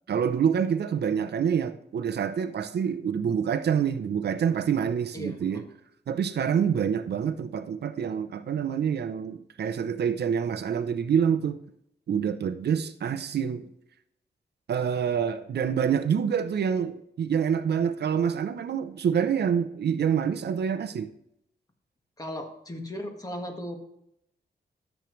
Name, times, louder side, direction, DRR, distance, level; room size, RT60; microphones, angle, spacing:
voice 1, 0.1-5.6 6.1-11.6 12.1-13.6 14.7-21.1, right 7 dB, 70° right, 0.7 m, -26 dB
voice 2, 5.1-5.7 22.2-23.8, equal, 20° left, 1.8 m, -36 dB
13.5 x 7.4 x 3.2 m
wide cardioid pair, 100°, 18 cm